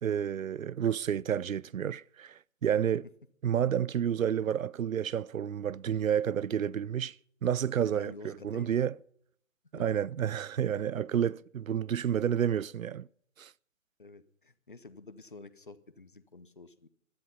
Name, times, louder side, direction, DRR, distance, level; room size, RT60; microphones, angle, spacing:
voice 1, 0.0-3.1 3.4-7.2 7.4-8.9 9.7-13.1 13.4-13.5, right 9 dB, 85° right, 0.6 m, -30 dB
voice 2, 7.8-8.9 14.0-16.9, left 3 dB, 40° left, 0.8 m, -49 dB
17.5 x 12.0 x 5.7 m
hypercardioid pair, 180°, 40 cm